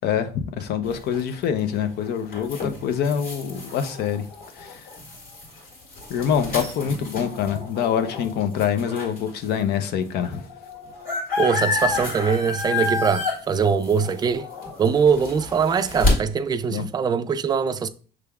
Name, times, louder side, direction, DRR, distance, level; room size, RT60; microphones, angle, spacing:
voice 1, 0.0-4.2 4.5-4.9 6.1-10.4 16.7-16.9, left 8 dB, 75° left, 0.6 m, -25 dB
sound 1, 0.8-9.3 9.9-10.0 10.1-16.1, left 3 dB, 60° left, 2.0 m, -29 dB
voice 2, 11.4-14.5 14.8-17.9, right 6 dB, 25° right, 0.3 m, -22 dB
6.0 x 3.3 x 2.3 m
cardioid pair, 110°, 17 cm